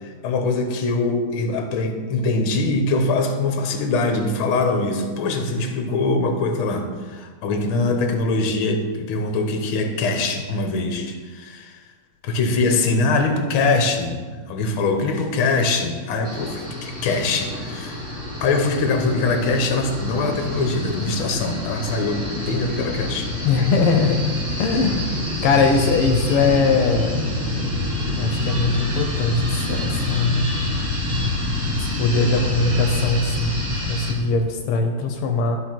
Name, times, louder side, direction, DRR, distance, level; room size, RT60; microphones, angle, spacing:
voice 1, 0.0-11.8 12.2-14.2 14.5-23.3, left 3 dB, 70° left, 5 dB, 1.7 m, -23 dB
sound 1, 16.2-34.1, left 1 dB, 35° right, 2.2 m, -26 dB
voice 2, 23.4-24.2 24.6-27.1 28.2-30.5 31.8-33.5 33.9-35.6, left 4 dB, 85° left, 4 dB, 1.7 m, -21 dB
12.5 x 4.4 x 4.4 m, 1.5 s
omnidirectional pair, 2.4 m